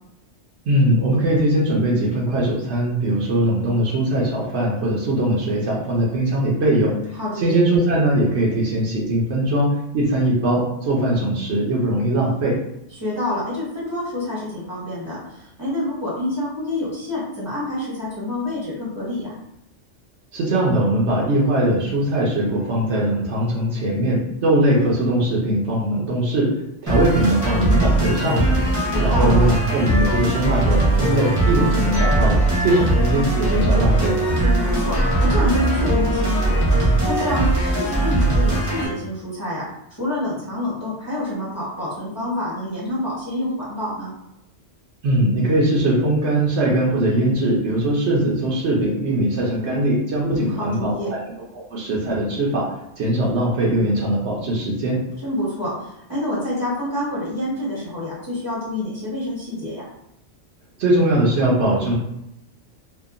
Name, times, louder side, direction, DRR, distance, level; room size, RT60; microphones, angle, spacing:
voice 1, 0.7-6.9 7.4-9.7 9.9-12.6 20.3-26.5 26.8-34.1 45.0-51.2 51.5-52.7 53.0-55.0 60.8-61.9, right 1 dB, 65° right, -3 dB, 0.9 m, -20 dB
voice 2, 7.2-7.6 12.9-19.3 28.8-29.4 34.4-39.6 40.0-44.1 50.2-51.1 55.2-59.9, left 1 dB, 15° left, -9 dB, 0.8 m, -27 dB
sound 1, 26.9-38.9, right 2 dB, 20° right, 0.7 m, -20 dB
2.7 x 2.2 x 2.4 m, 0.81 s
omnidirectional pair, 1.3 m